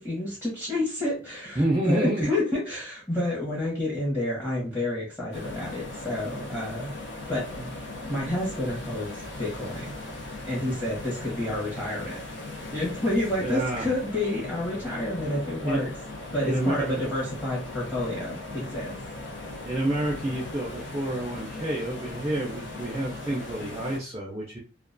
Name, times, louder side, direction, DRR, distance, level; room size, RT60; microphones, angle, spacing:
voice 1, 0.0-6.9 7.3-7.7 8.1-12.2 12.7-15.9 16.3-19.0, left 1 dB, 10° left, -7 dB, 0.8 m, -29 dB
voice 2, 1.6-2.3 13.4-13.9 15.7-15.9 16.4-17.0 19.6-24.6, right 1 dB, 15° right, -3 dB, 0.4 m, -28 dB
sound 1, 5.3-24.0, left 2 dB, 85° left, 0.6 m, -39 dB
2.3 x 2.2 x 2.5 m, 0.35 s
head